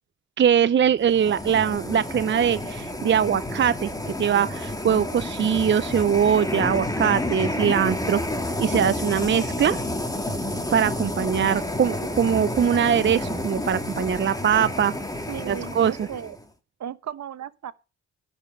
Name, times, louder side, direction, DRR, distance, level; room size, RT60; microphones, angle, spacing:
voice 1, 0.4-8.2 8.6-9.8 10.7-15.0 15.5-16.1, right 8 dB, 40° right, 0.6 m, -22 dB
sound 1, 1.0-16.4, left 1 dB, 10° left, 2.3 m, -30 dB
voice 2, 15.3-16.4 16.8-17.7, right 9 dB, 65° right, 1.0 m, -35 dB
10.5 x 5.3 x 7.6 m
cardioid pair, 70°, 30 cm